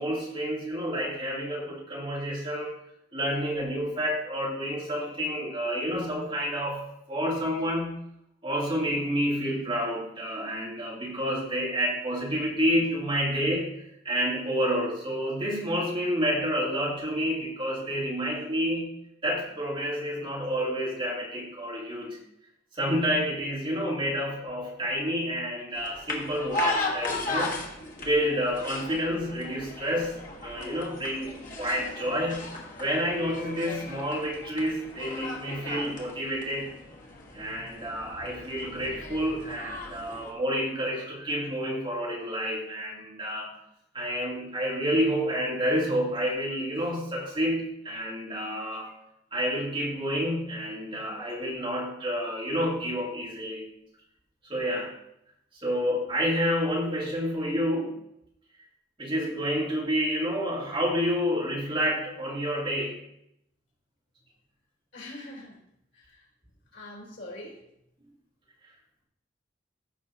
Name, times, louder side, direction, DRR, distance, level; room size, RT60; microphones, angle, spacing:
voice 1, 0.0-2.8 3.1-8.0 8.4-13.7 14.0-18.9 19.2-22.2 22.7-27.6 28.0-30.2 30.4-32.5 32.8-36.7 37.3-43.5 43.9-48.9 49.3-53.7 54.5-54.9 55.6-58.0 59.0-63.0, equal, 30° right, -5 dB, 2.4 m, -29 dB
sound 1, 25.8-40.3, left 2 dB, 45° left, 1.4 m, -36 dB
voice 2, 64.9-65.6 65.9-66.3 66.7-67.6, left 1 dB, 80° left, -2 dB, 3.3 m, -43 dB
14.5 x 5.5 x 2.8 m, 0.77 s
head